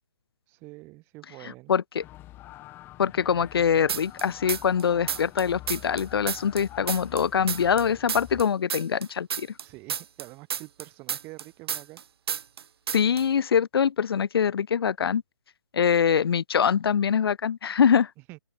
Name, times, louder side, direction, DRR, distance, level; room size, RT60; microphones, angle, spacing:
voice 1, 0.5-1.7 9.6-12.0 18.3-18.4, right 23 dB, 15° right, 0.8 m, -46 dB
voice 2, 1.7-2.0 3.0-9.5 12.9-15.2 15.7-18.1, left 7 dB, 60° left, 0.8 m, -24 dB
sound 1, 2.0-8.4, left 16 dB, 15° left, 1.8 m, -46 dB
sound 2, 3.9-4.8 5.1-7.8 8.1-12.0 12.3-12.6 12.9-13.2, right 8 dB, 65° right, 0.4 m, -31 dB
open air
hypercardioid pair, 160°, 14 cm